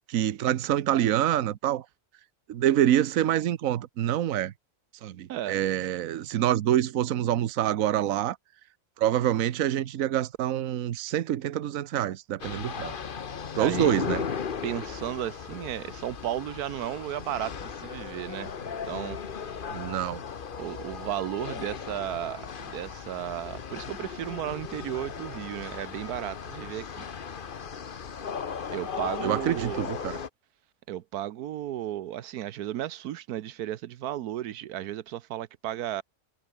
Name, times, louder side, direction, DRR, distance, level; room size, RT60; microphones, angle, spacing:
voice 1, 0.0-1.8 2.5-4.5 5.0-8.4 9.0-12.9 13.5-14.2 19.7-20.2 29.2-30.2, right 11 dB, 70° right, 1.2 m, -26 dB
sound 1, 12.4-30.3, left 6 dB, 40° left, 1.0 m, -37 dB
voice 2, 13.6-13.9 14.6-18.5 18.9-19.2 20.6-27.1 28.7-29.8 30.9-36.0, right 12 dB, 85° right, 1.3 m, -34 dB
omnidirectional pair, 1.6 m